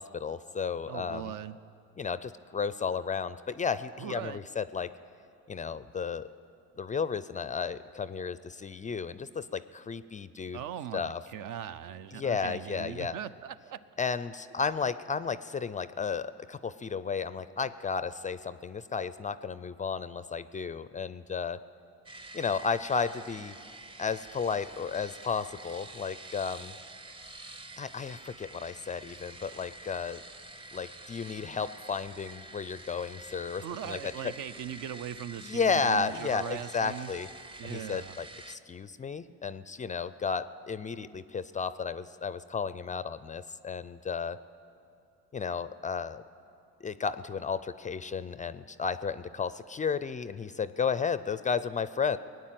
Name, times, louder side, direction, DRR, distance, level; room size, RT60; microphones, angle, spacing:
voice 1, 0.0-1.3 2.0-4.9 5.5-6.3 6.8-10.6 10.9-11.2 12.1-13.1 14.0-21.6 22.3-23.5 24.0-26.7 27.8-30.2 30.7-34.3 35.4-37.3 37.6-44.4 45.3-46.2 46.8-52.2, left 5 dB, 25° left, 15 dB, 0.4 m, -33 dB
voice 2, 0.9-1.6 4.0-4.4 10.5-13.8 33.6-37.1 37.6-38.1, right 10 dB, 65° right, 13 dB, 0.6 m, -40 dB
sound 1, 22.1-38.6, right 2 dB, 15° right, 0.7 m, -48 dB
19.0 x 9.5 x 7.6 m, 2.6 s
cardioid pair, 95°, 35 cm